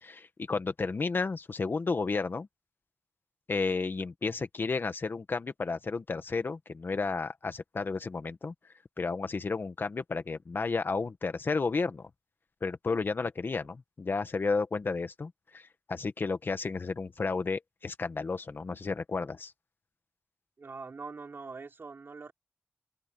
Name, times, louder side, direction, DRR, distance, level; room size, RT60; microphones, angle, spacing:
voice 1, 0.0-2.5 3.5-8.5 9.0-12.1 12.6-19.5, left 4 dB, 55° left, 1.7 m, -32 dB
voice 2, 20.6-22.3, right 4 dB, 60° right, 5.4 m, -43 dB
open air
wide cardioid pair, 80°, 4 cm